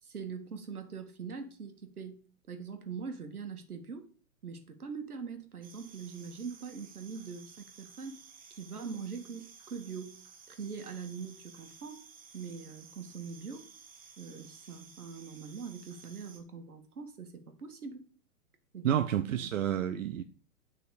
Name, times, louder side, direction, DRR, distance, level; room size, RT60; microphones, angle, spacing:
voice 1, 0.0-2.2 2.5-4.1 4.4-8.2 8.5-10.2 10.5-12.0 12.3-13.7 14.2-18.1 18.7-19.0, right 5 dB, 75° right, 2.3 m, -42 dB
sound 1, 5.6-16.4, right 6 dB, 20° right, 1.8 m, -55 dB
voice 2, 18.8-20.2, right 10 dB, 60° right, 0.9 m, -29 dB
11.0 x 6.0 x 5.0 m
figure-of-eight pair, 110°, 45 cm